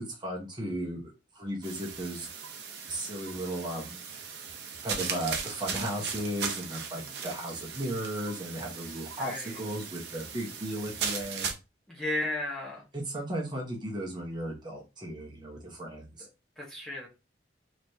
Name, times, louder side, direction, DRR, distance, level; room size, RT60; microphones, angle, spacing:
voice 1, 0.0-2.3 2.9-4.0 4.8-11.5 12.9-16.3, right 1 dB, 25° right, -2 dB, 1.1 m, -35 dB
sound 1, 1.6-11.5, right 6 dB, 60° right, 0.8 m, -38 dB
voice 2, 6.9-7.3 9.2-9.6 11.9-12.8 16.6-17.1, left 1 dB, 5° left, -6 dB, 1.1 m, -35 dB
4.1 x 3.1 x 2.8 m, 0.28 s
head